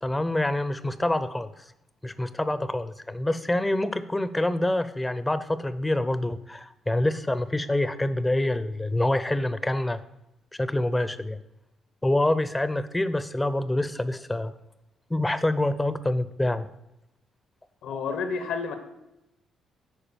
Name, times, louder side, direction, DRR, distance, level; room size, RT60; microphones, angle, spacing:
voice 1, 0.0-1.6 2.0-10.0 10.5-11.4 12.0-14.5 15.1-16.7, left 1 dB, 10° left, 14 dB, 0.6 m, -26 dB
voice 2, 17.8-18.8, left 5 dB, 80° left, 8 dB, 1.2 m, -30 dB
9.0 x 4.9 x 6.9 m, 0.89 s
cardioid pair, 90°, 0 cm